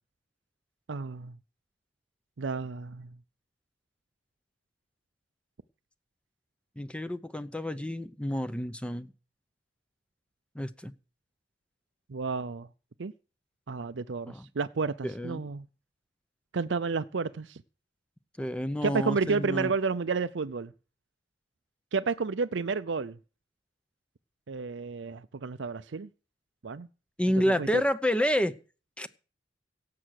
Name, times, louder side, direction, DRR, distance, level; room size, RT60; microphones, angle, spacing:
voice 1, 0.9-1.3 2.4-3.1 12.1-12.7 13.0-13.1 13.7-15.7 16.5-17.6 18.8-20.7 21.9-23.2 24.5-26.1 26.6-26.9 27.6-27.8, right 4 dB, 70° right, 0.6 m, -31 dB
voice 2, 6.8-9.1 10.5-10.9 14.3-14.5 15.0-15.4 18.4-19.7 27.2-28.5 29.0-29.1, equal, 5° left, 0.7 m, -29 dB
17.0 x 7.7 x 6.5 m
head